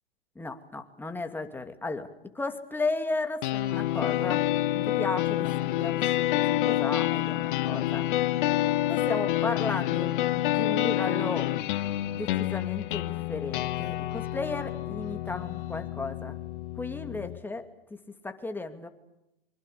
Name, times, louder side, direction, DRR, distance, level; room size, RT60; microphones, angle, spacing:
voice 1, 0.4-2.1 2.3-4.4 4.7-8.1 8.9-11.6 12.1-16.4 16.8-18.9, left 3 dB, 5° left, 6 dB, 2.6 m, -35 dB
sound 1, 3.4-17.4, left 14 dB, 55° left, 1.4 m, -28 dB
26.0 x 25.0 x 7.0 m, 0.87 s
hypercardioid pair, 115°, 30 cm